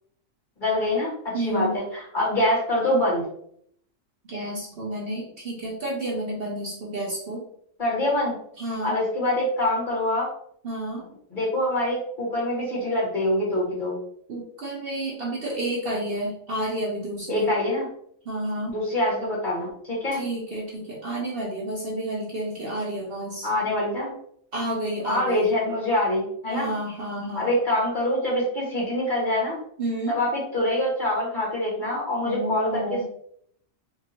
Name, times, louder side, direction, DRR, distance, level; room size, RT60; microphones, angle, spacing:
voice 1, 0.6-3.2 7.8-8.3 8.8-10.3 11.3-14.0 17.3-17.9 18.7-20.2 23.4-24.1 25.0-26.7 27.3-29.6 30.1-33.0, left 1 dB, 40° left, -6 dB, 1.8 m, -25 dB
voice 2, 1.3-1.7 4.3-7.5 8.6-9.0 10.6-11.1 14.3-17.6 18.3-18.7 20.1-23.5 24.5-25.5 26.5-27.5 29.8-30.2 32.2-33.0, right 1 dB, 55° right, -2 dB, 0.9 m, -30 dB
4.5 x 2.5 x 2.9 m, 0.67 s
omnidirectional pair, 1.4 m